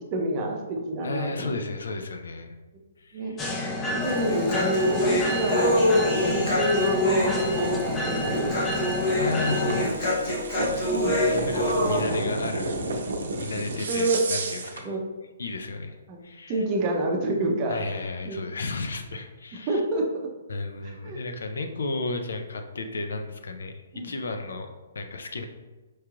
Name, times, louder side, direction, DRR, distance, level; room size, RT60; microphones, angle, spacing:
voice 1, 0.1-1.6 3.1-3.3 3.8-9.9 10.9-11.2 13.9-14.2 14.8-15.0 16.1-16.2 16.5-17.8 18.2-18.4 19.7-20.1 21.0-21.2 23.9-24.1, right 1 dB, 30° right, 1 dB, 0.6 m, -28 dB
voice 2, 1.0-2.6 3.0-3.4 9.1-9.9 10.3-10.4 11.1-12.7 13.4-14.9 15.4-16.0 16.2-16.6 17.7-19.8 20.5-25.4, left 3 dB, 80° left, 5 dB, 0.5 m, -33 dB
sound 1, 3.4-9.9, left 1 dB, 15° left, 0.4 m, -30 dB
sound 2, 3.9-14.9, right 2 dB, 70° right, 0.6 m, -34 dB
Human voice, 4.0-12.0, left 1 dB, 40° left, 1.0 m, -25 dB
4.7 x 2.9 x 2.4 m, 1.2 s
hypercardioid pair, 150°, 0 cm